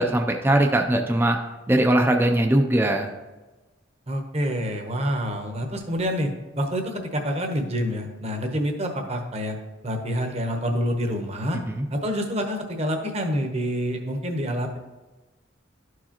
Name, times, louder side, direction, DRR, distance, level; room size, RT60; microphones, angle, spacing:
voice 1, 0.0-1.4 1.7-3.1 11.7-11.9, right 1 dB, 10° right, 3 dB, 0.4 m, -20 dB
voice 2, 4.1-6.3 6.6-9.6 9.8-11.6 11.9-14.8, equal, 35° right, 4 dB, 0.9 m, -27 dB
12.0 x 4.8 x 2.9 m, 1.2 s
head